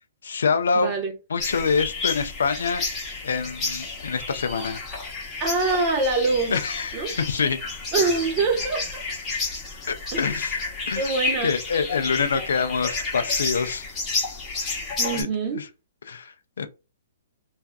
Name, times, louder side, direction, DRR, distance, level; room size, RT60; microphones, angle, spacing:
voice 1, 0.2-0.9 1.3-2.8 3.2-4.8 6.5-7.6 9.9-11.1 11.4-13.9 15.1-15.3 15.5-15.7 16.1-16.7, left 5 dB, 80° left, 0.4 m, -26 dB
voice 2, 0.7-1.1 5.4-6.6 6.9-7.1 7.9-9.0 10.1-10.3 10.9-11.5 15.0-15.6, right 3 dB, 25° right, 0.9 m, -24 dB
sound 1, 1.4-15.2, left 3 dB, 15° left, 0.9 m, -31 dB
2.5 x 2.3 x 2.2 m
hypercardioid pair, 155°, 0 cm